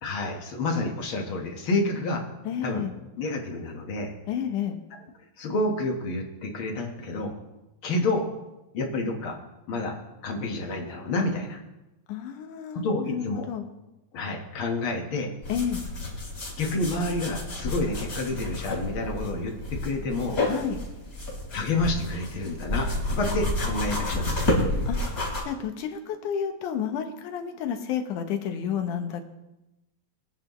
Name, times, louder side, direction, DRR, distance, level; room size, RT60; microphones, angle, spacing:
voice 1, 0.0-2.2 2.6-2.8 3.2-4.1 5.4-7.3 7.8-8.2 8.7-9.4 9.7-10.0 10.2-11.6 12.7-13.5 14.1-15.3 16.6-20.4 21.5-24.5, left 2 dB, 55° left, 1 dB, 1.6 m, -29 dB
voice 2, 2.5-2.9 4.3-4.8 12.1-13.6 15.5-15.8 20.4-20.8 24.9-25.0 25.5-29.2, left 8 dB, 70° left, 5 dB, 2.4 m, -30 dB
sound 1, 15.4-25.4, left 1 dB, 25° left, 3.3 m, -30 dB
22.5 x 9.4 x 3.1 m, 0.97 s
omnidirectional pair, 4.0 m